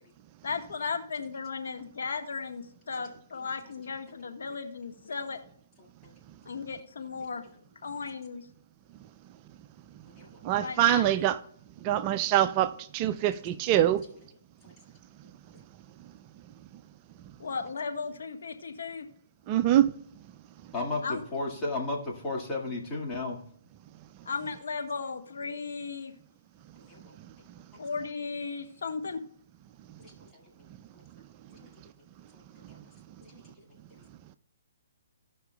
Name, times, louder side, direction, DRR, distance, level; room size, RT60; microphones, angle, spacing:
voice 1, 0.4-5.4 6.5-7.4 7.8-8.4 10.6-11.0 17.4-19.1 21.0-21.2 24.2-26.1 27.8-29.2, left 5 dB, 75° left, 1.4 m, -35 dB
voice 2, 5.8-6.1 10.2-10.3 14.6-14.7 20.7-23.4 26.9-27.1 30.0-30.1 31.6-31.7 32.7-32.8 33.3-33.4, left 2 dB, 20° left, 1.9 m, -34 dB
voice 3, 10.4-11.4 11.8-14.0 19.5-19.9, right 12 dB, 30° right, 0.4 m, -24 dB
17.0 x 5.8 x 2.3 m
hypercardioid pair, 145°, 0 cm